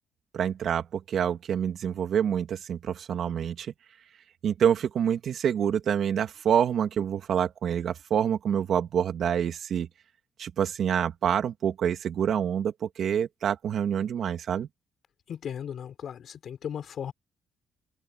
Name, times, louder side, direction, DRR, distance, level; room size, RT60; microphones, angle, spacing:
voice 1, 0.3-3.7 4.4-9.9 10.4-14.7, right 8 dB, 65° right, 2.7 m, -27 dB
voice 2, 15.3-17.1, left 8 dB, 60° left, 5.0 m, -36 dB
cardioid pair, 90°, 0 cm